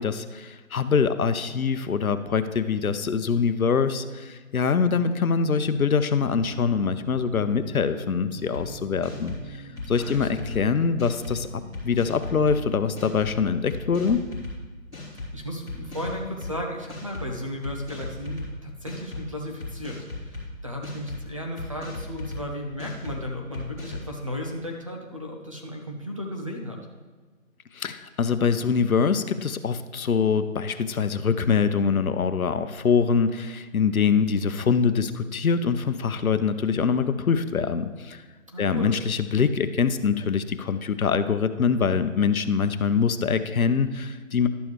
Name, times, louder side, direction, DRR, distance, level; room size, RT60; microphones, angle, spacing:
voice 1, 0.0-9.6 9.9-14.2 27.7-38.2 38.6-44.5, left 6 dB, 90° left, 11 dB, 0.7 m, -24 dB
sound 1, 6.3-13.1, right 2 dB, 75° right, 1.3 m, -44 dB
sound 2, 8.5-8.6 9.0-9.4 9.8-10.6 11.0-11.4 11.7-12.6 13.0-13.3 13.7-14.5 14.9-15.3 15.7-16.5 16.9-17.3 17.6-18.5 18.9-19.2 19.6-20.4 20.8-21.2 21.6-22.4 22.8-23.2 23.5-24.1, left 2 dB, 5° right, 1.0 m, -36 dB
voice 2, 9.9-10.3 15.3-26.8 38.5-38.9, left 1 dB, 25° right, 0 dB, 0.6 m, -35 dB
11.5 x 7.1 x 3.1 m, 1.4 s
figure-of-eight pair, 160°, 41 cm